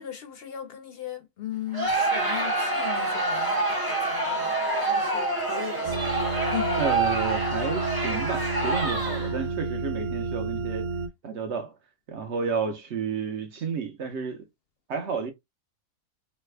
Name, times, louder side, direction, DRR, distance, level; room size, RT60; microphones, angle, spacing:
voice 1, 0.0-6.8, left 10 dB, 65° left, 0.6 m, -38 dB
Crowd, 1.7-9.4, right 2 dB, 20° right, 0.6 m, -27 dB
sound 1, 5.9-11.1, right 3 dB, 90° right, 1.0 m, -31 dB
voice 2, 6.8-10.9 11.2-11.7 12.1-14.5 14.9-15.3, right 6 dB, 60° right, 0.9 m, -31 dB
3.2 x 2.2 x 3.2 m
omnidirectional pair, 1.5 m